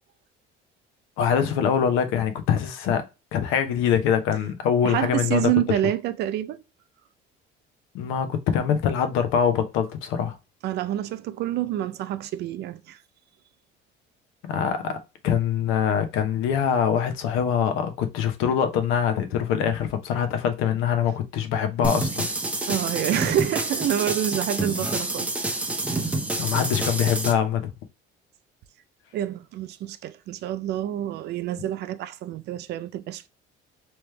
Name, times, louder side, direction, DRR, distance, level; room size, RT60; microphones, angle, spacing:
voice 1, 1.2-3.1 3.3-5.4 7.9-10.4 14.5-15.0 15.2-22.3 26.4-27.7, left 8 dB, 80° left, 0.8 m, -24 dB
voice 2, 4.8-6.6 10.6-13.0 22.7-25.3 29.1-33.3, right 12 dB, 55° right, 0.5 m, -27 dB
sound 1, 21.8-27.3, right 2 dB, 5° right, 0.6 m, -28 dB
3.3 x 3.1 x 3.2 m
cardioid pair, 145°, 21 cm